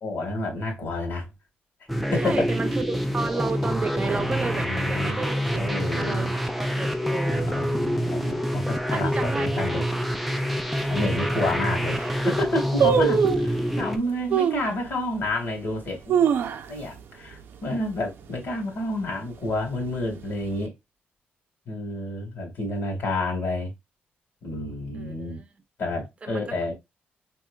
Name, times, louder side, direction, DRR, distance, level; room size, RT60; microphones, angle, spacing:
voice 1, 0.0-1.3 2.1-2.4 4.0-5.2 5.6-6.3 7.3-9.8 10.9-16.3 16.7-20.7 21.7-23.7 24.4-25.4 25.8-26.7, left 2 dB, 60° left, 1.9 m, -29 dB
sound 1, 1.9-14.0, equal, ahead, 0.5 m, -26 dB
voice 2, 2.2-5.7 6.0-7.6 8.9-9.9 11.0-11.5 14.3-14.5 24.9-25.4 26.2-26.7, right 4 dB, 30° right, 0.7 m, -33 dB
sound 2, 10.8-10.9 11.5-11.6 11.8-12.2 12.8-13.5 14.3-14.7 15.2-15.3 15.9-17.0 17.3-17.4 17.7-18.1 18.5-18.8 19.5-20.2 20.5-20.6, right 8 dB, 65° right, 0.5 m, -23 dB
4.4 x 3.0 x 2.3 m
cardioid pair, 105°, 4 cm